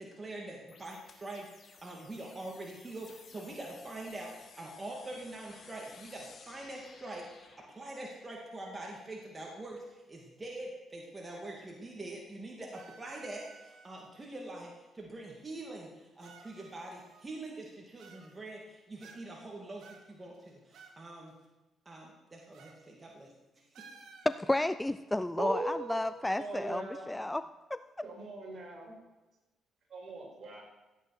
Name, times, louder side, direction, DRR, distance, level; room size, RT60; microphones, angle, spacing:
voice 1, 0.0-21.3 21.9-23.8, right 2 dB, 25° right, -1 dB, 2.4 m, -44 dB
sound 1, 0.7-7.7, left 5 dB, 55° left, 2.4 m, -56 dB
sound 2, 12.7-14.1 15.0-15.1 16.2-17.5 18.0-18.6 19.0-19.5 19.8-21.0 21.3-21.4 22.5-22.8 23.1-23.3 23.7-24.4, right 5 dB, 70° right, 2.2 m, -56 dB
voice 2, 24.3-27.8, left 1 dB, 10° left, 13 dB, 0.4 m, -32 dB
voice 3, 25.4-27.1 28.0-28.9 29.9-30.6, right 2 dB, 45° right, -1 dB, 5.6 m, -39 dB
15.0 x 8.7 x 6.1 m, 1.1 s
cardioid pair, 90°, 0 cm